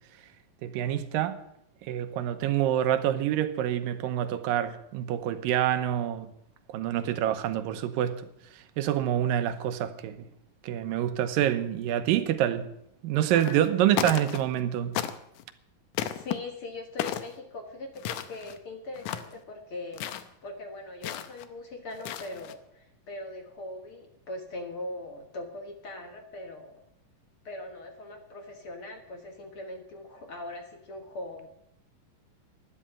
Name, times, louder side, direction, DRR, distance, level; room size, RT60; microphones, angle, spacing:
voice 1, 0.6-1.4 1.8-6.3 6.7-8.3 8.8-10.3 10.6-12.7 13.0-15.0, right 11 dB, 90° right, 2.7 m, -27 dB
sound 1, 13.3-13.7 13.9-14.6 14.9-15.4 15.9-16.4 17.0-17.3 18.0-18.6 18.9-19.4 19.9-20.3 21.0-21.4 21.9-22.5, left 11 dB, 75° left, 2.2 m, -33 dB
voice 2, 16.0-20.1 20.4-26.8 27.5-31.5, left 2 dB, 50° left, 1.9 m, -41 dB
12.5 x 10.5 x 9.0 m
omnidirectional pair, 3.9 m